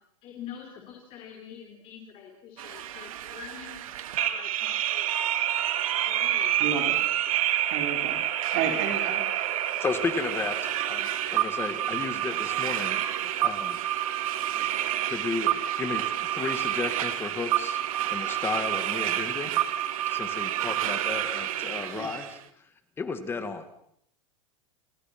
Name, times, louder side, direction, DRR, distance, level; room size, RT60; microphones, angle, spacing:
voice 1, 0.2-3.8 4.1-5.3 6.0-6.7, left 8 dB, 30° left, 2 dB, 4.5 m, -45 dB
sound 1, 2.6-22.4, right 12 dB, 80° right, 2.4 m, -28 dB
voice 2, 6.6-7.0 7.7-8.2 8.5-9.3 19.5-19.6 21.9-22.1, right 7 dB, 45° right, 4 dB, 4.9 m, -31 dB
voice 3, 9.8-13.8 14.5-14.6 15.1-19.5 20.1-22.7 23.0-23.8, left 4 dB, 15° left, 10 dB, 1.9 m, -34 dB
29.5 x 22.5 x 6.0 m, 0.69 s
supercardioid pair, 165°, 18 cm